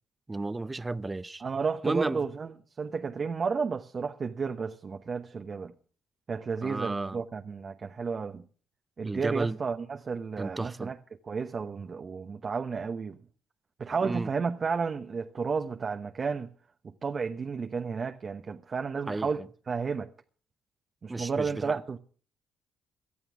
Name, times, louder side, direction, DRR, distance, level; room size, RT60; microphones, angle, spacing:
voice 1, 0.3-1.4 1.8-2.2 6.6-7.2 9.0-9.6 10.4-10.9 14.0-14.3 19.1-19.5 21.1-21.8, right 2 dB, 20° right, 0.7 m, -33 dB
voice 2, 1.4-2.5 2.8-5.7 6.3-8.4 9.0-11.0 11.2-13.2 13.8-16.5 16.8-20.1 21.0-22.0, right 5 dB, 45° right, 1.1 m, -32 dB
18.5 x 12.5 x 3.6 m
supercardioid pair, 60°, 0 cm